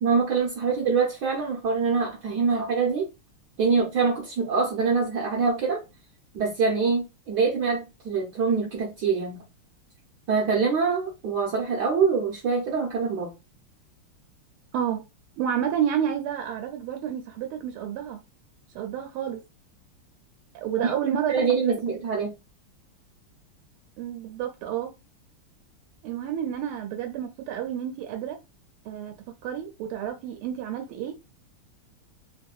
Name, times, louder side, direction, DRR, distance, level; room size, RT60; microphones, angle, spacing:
voice 1, 0.0-3.1 3.6-5.8 6.3-9.4 10.3-13.3 20.8-20.9 21.3-22.3, right 5 dB, 65° right, 1.2 m, -24 dB
voice 2, 15.4-18.2 18.7-19.4 20.5-21.7 24.0-24.9 26.0-28.4 28.9-31.2, right 9 dB, 85° right, 1.5 m, -30 dB
3.5 x 2.6 x 2.3 m
omnidirectional pair, 2.3 m